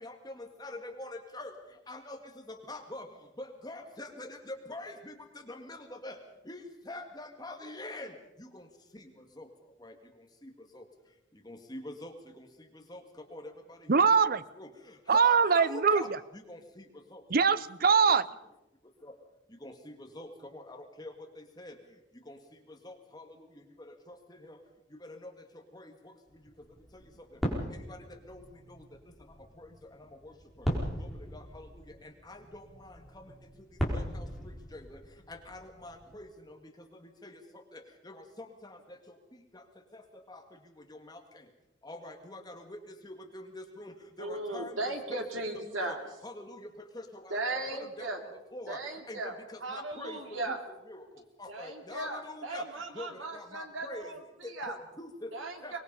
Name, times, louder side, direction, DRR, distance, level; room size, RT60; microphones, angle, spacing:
voice 1, 0.0-1.5 1.9-2.2 2.5-3.1 3.4-6.2 6.5-8.1 8.4-8.7 8.9-9.1 9.4-9.5 9.8-9.9 10.4-10.8 11.5-12.5 12.9-13.0 13.3-14.0 14.6-16.8 17.1-17.2 18.1-18.2 19.0-19.1 19.6-21.8 22.3-22.4 22.8-23.5 24.1-24.6 25.0-25.3 25.7-25.9 26.9-27.0 27.7-28.4 28.7-28.8 29.6-29.7 30.0-30.3 30.6-30.7 31.0-33.3 33.9-35.0 35.3-36.6 37.0-37.4 37.7-39.0 39.5-39.6 39.9-40.0 40.3-40.4 40.9-41.2 41.8-45.2 45.7-46.0 46.2-48.8 49.1-50.6 50.9-51.0 51.4-52.7 52.9-54.1 54.4-55.3 55.6-55.7, left 1 dB, 20° left, 4 dB, 1.9 m, -45 dB
voice 2, 13.9-14.4 15.1-16.0 17.3-18.2, right 5 dB, 45° right, 16 dB, 0.7 m, -22 dB
sound 1, 26.3-36.2, equal, ahead, 4.1 m, -39 dB
voice 3, 44.2-46.1 47.3-48.2 48.7-50.6 51.5-54.8 55.3-55.8, right 2 dB, 80° right, 4 dB, 3.0 m, -37 dB
24.0 x 20.0 x 5.5 m, 0.94 s
head